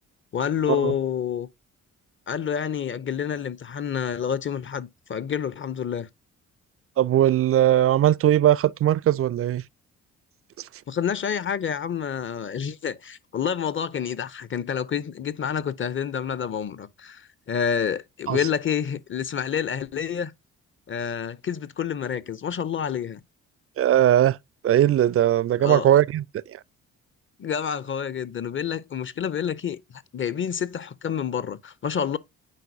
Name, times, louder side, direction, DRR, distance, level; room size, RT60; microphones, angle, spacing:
voice 1, 0.3-1.5 2.3-6.1 10.9-20.3 20.9-23.2 25.6-25.9 27.4-29.8 30.1-32.2, left 8 dB, 35° left, 0.7 m, -28 dB
voice 2, 7.0-9.6 18.3-18.4 23.8-24.4 24.6-26.2 26.5-26.6, right 12 dB, 40° right, 0.4 m, -19 dB
9.1 x 3.9 x 2.7 m
hypercardioid pair, 45°, 37 cm